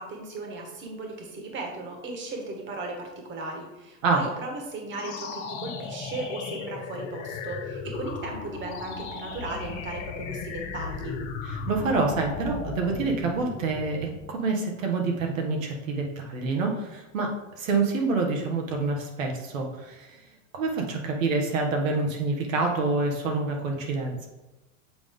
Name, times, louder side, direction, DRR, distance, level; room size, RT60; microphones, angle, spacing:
voice 1, 0.0-11.1, right 2 dB, 30° right, 2 dB, 1.4 m, -36 dB
sound 1, 4.9-14.4, left 4 dB, 50° left, 1.6 m, -36 dB
voice 2, 11.4-20.2 20.5-24.3, right 3 dB, 85° right, 1 dB, 1.5 m, -27 dB
7.9 x 3.8 x 3.6 m, 1.0 s
supercardioid pair, 125°, 39 cm